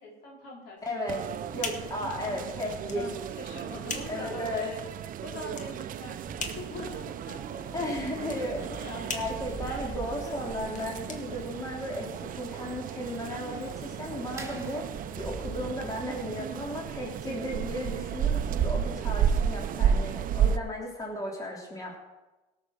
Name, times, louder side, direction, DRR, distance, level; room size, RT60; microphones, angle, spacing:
voice 1, 0.0-1.6 2.1-2.5 2.9-4.8 5.2-9.2 9.6-9.9 10.3-10.7, left 2 dB, 75° left, -2 dB, 4.3 m, -44 dB
sound 1, 0.8-12.1, left 4 dB, 50° left, 1.7 m, -42 dB
voice 2, 0.8-1.2 1.5-3.0 4.1-4.7 7.7-8.6 9.1-14.8 15.2-22.0, left 1 dB, 20° left, -2 dB, 3.2 m, -35 dB
sound 2, 1.1-20.6, right 8 dB, 55° right, 0.6 m, -33 dB
sound 3, 6.1-16.2, right 4 dB, 15° right, 2.4 m, -46 dB
17.5 x 6.5 x 6.1 m, 1.1 s
cardioid pair, 110°, 17 cm